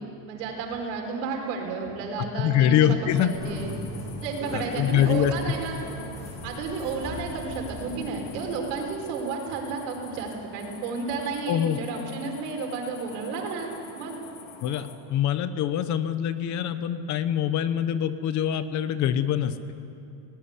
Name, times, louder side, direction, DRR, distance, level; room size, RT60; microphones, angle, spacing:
voice 1, 0.3-2.8 3.2-3.7 4.2-5.8 6.4-14.1, right 4 dB, 90° right, 2 dB, 5.2 m, -32 dB
voice 2, 2.4-3.4 4.5-5.3 11.5-11.8 14.6-19.6, left 10 dB, 35° left, 12 dB, 0.9 m, -24 dB
sound 1, 3.1-15.0, left 8 dB, 85° left, 3.0 m, -48 dB
sound 2, 3.3-8.8, equal, 15° left, 8.0 m, -39 dB
18.5 x 18.5 x 9.9 m, 2.7 s
cardioid pair, 160°, 47 cm